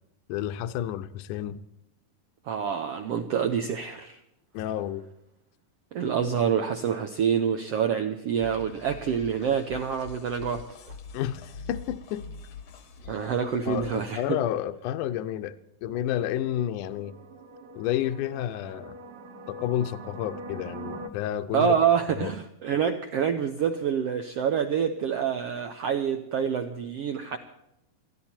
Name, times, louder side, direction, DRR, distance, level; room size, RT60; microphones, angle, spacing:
voice 1, 0.3-1.6 4.5-5.1 11.1-12.3 13.7-17.1 17.7-19.0 19.5-21.8 22.2-22.3, left 11 dB, 75° left, 2.1 m, -30 dB
voice 2, 2.5-4.2 5.9-10.6 13.1-14.2 21.5-27.4, right 7 dB, 80° right, 1.4 m, -27 dB
sound 1, 8.4-14.0, left 4 dB, 55° left, 1.4 m, -44 dB
sound 2, 15.9-21.1, right 3 dB, 65° right, 1.4 m, -43 dB
22.0 x 14.5 x 4.4 m
omnidirectional pair, 4.1 m